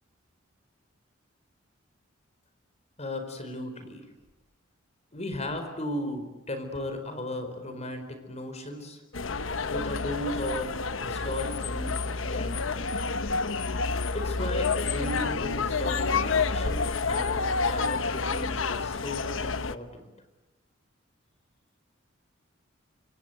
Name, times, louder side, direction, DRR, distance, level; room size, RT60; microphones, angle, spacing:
voice 1, 3.0-4.0 5.1-9.0 9.6-10.7 11.0-12.8 14.1-20.1, left 1 dB, 35° left, 7 dB, 4.6 m, -36 dB
sound 1, 9.1-19.8, left 4 dB, 75° left, 1.1 m, -29 dB
27.0 x 26.0 x 8.3 m, 1.1 s
head